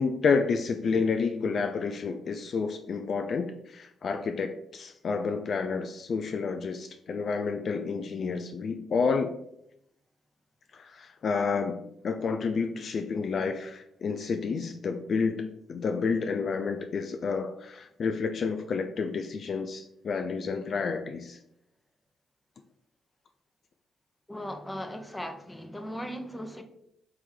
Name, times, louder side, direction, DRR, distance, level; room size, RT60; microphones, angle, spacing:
voice 1, 0.0-9.4 10.7-21.4, left 5 dB, 60° left, 6 dB, 0.3 m, -30 dB
voice 2, 24.3-26.6, equal, 15° left, 6 dB, 0.8 m, -38 dB
3.6 x 3.1 x 4.8 m, 0.76 s
hypercardioid pair, 45°, 0 cm